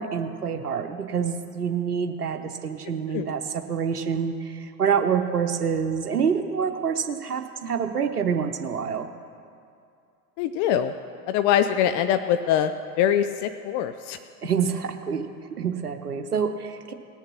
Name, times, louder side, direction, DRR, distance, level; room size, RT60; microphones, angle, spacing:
voice 1, 0.0-9.1 14.4-15.3 15.6-16.9, right 6 dB, 90° right, 6 dB, 0.9 m, -27 dB
voice 2, 10.4-10.9 11.3-12.7 13.0-14.2, left 10 dB, 45° left, 10 dB, 0.6 m, -23 dB
18.5 x 6.6 x 5.9 m, 2.4 s
figure-of-eight pair, 80°, 45 cm